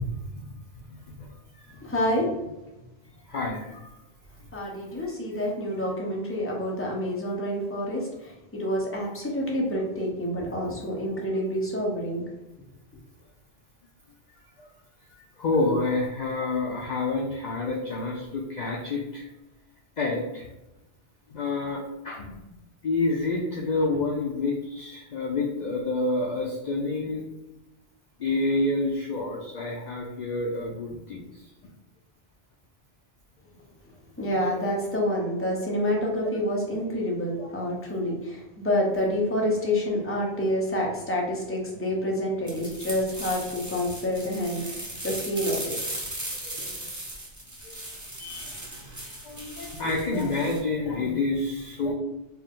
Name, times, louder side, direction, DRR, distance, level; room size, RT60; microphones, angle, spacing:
voice 1, 1.8-2.3 4.5-12.2 34.2-45.7, left 1 dB, 15° left, -2 dB, 0.8 m, -28 dB
voice 2, 3.3-3.9 15.4-19.2 20.0-20.5 21.3-22.4 22.8-27.2 28.2-31.2 34.5-34.6 37.4-37.5 38.9-39.0 46.4-46.8 47.6-47.8 48.2-48.6 49.2-51.9, left 2 dB, 55° left, -1 dB, 0.6 m, -28 dB
sound 1, 42.5-50.6, right 1 dB, 20° right, 0.9 m, -37 dB
4.4 x 2.1 x 3.6 m, 0.97 s
omnidirectional pair, 1.0 m